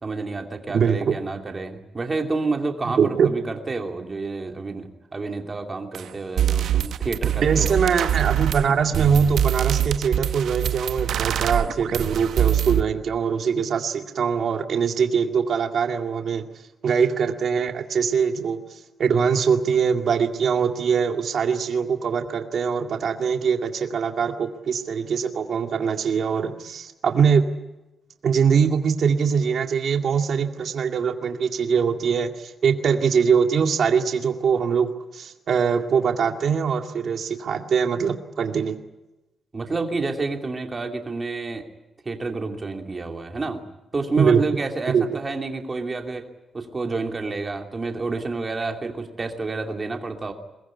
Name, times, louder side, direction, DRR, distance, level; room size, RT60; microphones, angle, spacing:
voice 1, 0.0-7.9 39.5-41.6 42.0-43.6 43.9-46.3 46.5-50.3, right 3 dB, 25° right, 3 dB, 2.8 m, -29 dB
voice 2, 0.7-1.1 3.0-3.3 7.4-16.4 16.8-18.6 19.0-27.5 28.2-38.8 44.2-44.4 44.9-45.0, right 6 dB, 55° right, 5 dB, 2.2 m, -22 dB
sound 1, 5.9-6.0 6.4-12.8, right 10 dB, 90° right, 1.0 m, -24 dB
23.0 x 20.0 x 9.7 m, 1.0 s
wide cardioid pair, 180°, 0 cm